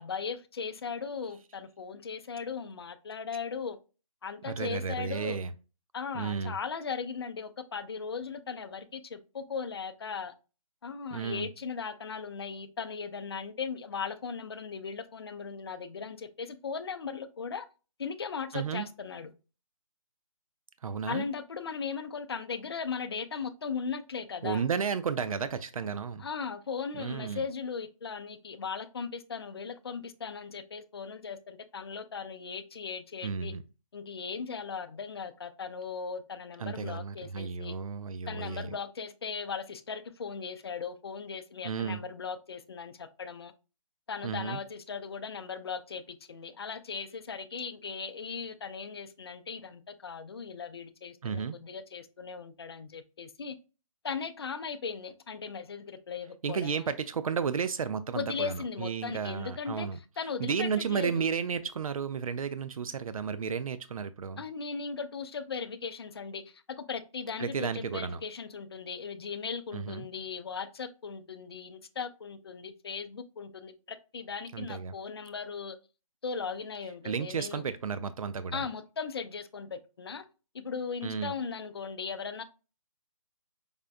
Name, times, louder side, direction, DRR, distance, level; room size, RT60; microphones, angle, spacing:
voice 1, 0.0-3.8 4.2-5.4 5.9-10.3 10.8-17.7 18.0-19.3 21.1-24.6 26.2-33.5 33.9-37.7 38.3-43.5 44.1-53.6 54.0-56.9 58.1-59.9 60.2-61.3 64.4-75.8 76.2-77.6 78.5-80.3 80.5-82.4, left 5 dB, 50° left, 0.4 m, -38 dB
voice 2, 4.5-5.5 6.1-6.5 11.1-11.5 18.5-18.9 20.8-21.3 24.4-26.2 27.0-27.4 33.2-33.6 36.6-38.7 41.6-42.0 44.2-44.6 51.2-51.6 56.4-60.0 60.4-64.4 67.4-68.2 69.7-70.1 74.5-74.9 77.0-78.6 81.0-81.3, right 6 dB, 85° right, 0.4 m, -33 dB
5.0 x 2.2 x 2.5 m
hypercardioid pair, 170°, 18 cm